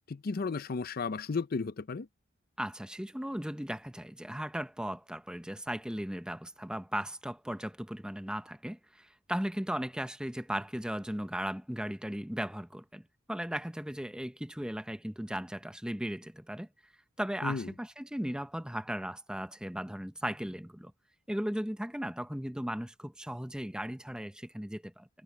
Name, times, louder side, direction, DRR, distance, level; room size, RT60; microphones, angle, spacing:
voice 1, 0.1-2.1 17.4-17.7, left 4 dB, 50° left, 0.5 m, -34 dB
voice 2, 2.6-13.0 13.3-16.7 17.2-20.9 21.3-25.1, equal, 5° right, 0.8 m, -37 dB
head